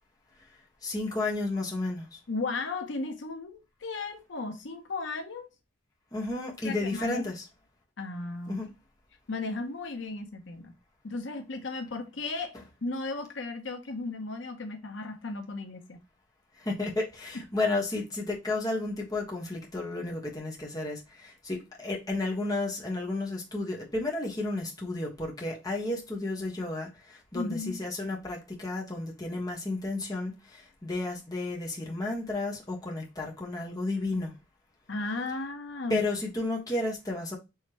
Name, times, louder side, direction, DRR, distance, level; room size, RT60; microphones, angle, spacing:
voice 1, 0.8-2.2 6.1-7.4 8.5-8.7 16.6-34.3 35.9-37.4, left 2 dB, 20° left, 1.3 m, -32 dB
voice 2, 2.3-5.5 6.6-7.2 8.0-8.6 9.3-10.7 11.0-16.0 27.3-27.8 34.9-36.0, left 3 dB, 70° left, 0.8 m, -35 dB
4.9 x 3.2 x 2.9 m
head